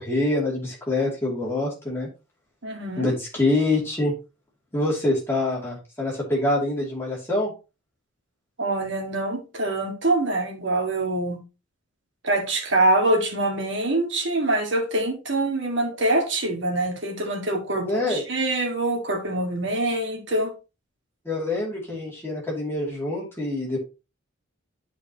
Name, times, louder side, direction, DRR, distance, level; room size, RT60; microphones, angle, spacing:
voice 1, 0.0-2.1 3.0-4.1 4.7-7.5 17.8-18.2 21.2-23.8, left 2 dB, 10° left, 2.6 m, -25 dB
voice 2, 2.6-3.1 8.6-11.4 12.2-20.5, right 2 dB, 55° right, 1.9 m, -24 dB
9.9 x 4.8 x 2.9 m
head